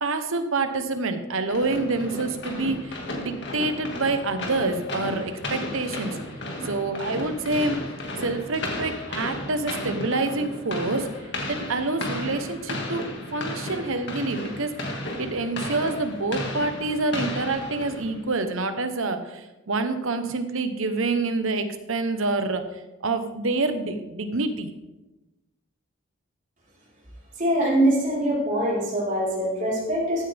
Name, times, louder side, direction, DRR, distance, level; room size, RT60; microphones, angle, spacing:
voice 1, 0.0-6.2 6.6-7.8 8.2-11.1 11.5-24.7, right 3 dB, 75° right, 8 dB, 1.0 m, -27 dB
sound 1, 1.5-18.3, left 1 dB, 55° left, 2.0 m, -34 dB
voice 2, 27.4-30.3, right 1 dB, 35° right, -6 dB, 4.3 m, -23 dB
15.0 x 9.0 x 3.5 m, 1.0 s
head